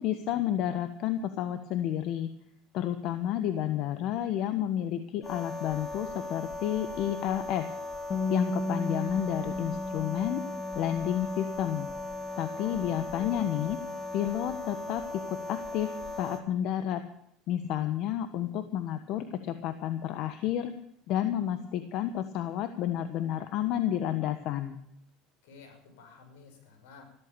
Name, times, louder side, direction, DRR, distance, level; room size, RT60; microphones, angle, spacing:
voice 1, 0.0-2.3 2.7-7.7 8.3-10.4 10.7-11.9 12.4-13.8 14.1-17.0 17.5-20.7 21.1-24.8, left 11 dB, 60° left, 9 dB, 1.3 m, -31 dB
sound 1, 5.2-16.4, left 2 dB, 10° left, 3.1 m, -38 dB
Bass guitar, 8.1-14.4, left 2 dB, 35° left, 2.1 m, -37 dB
voice 2, 12.5-13.5 25.4-27.0, left 5 dB, 80° left, 4 dB, 6.4 m, -50 dB
15.0 x 13.5 x 6.9 m, 0.73 s
supercardioid pair, 120°, 0 cm